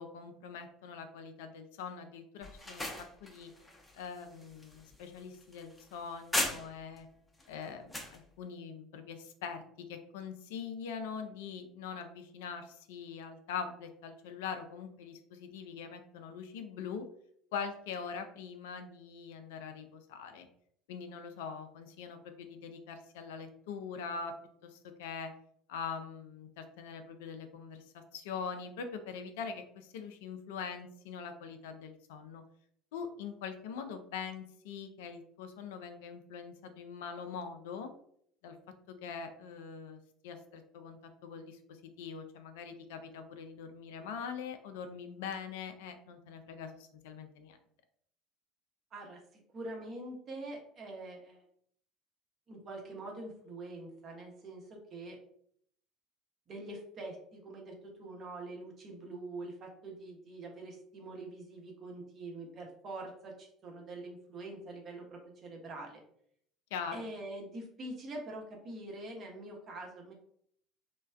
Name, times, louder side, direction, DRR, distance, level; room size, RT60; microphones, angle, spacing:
voice 1, 0.0-3.5 3.9-7.1 7.5-17.1 17.5-20.5 20.9-24.3 24.6-25.3 25.7-32.4 32.9-37.9 38.4-38.6 38.9-47.6 66.7-67.0, left 6 dB, 65° left, 7 dB, 0.3 m, -43 dB
sound 1, 2.4-7.0 7.4-8.2, left 1 dB, 10° left, 0.6 m, -38 dB
voice 2, 49.5-51.4 52.5-55.2 56.5-57.7 58.0-66.0 66.9-70.1, right 2 dB, 40° right, 0 dB, 0.8 m, -44 dB
3.0 x 2.2 x 2.3 m, 0.66 s
figure-of-eight pair, 65°, 0 cm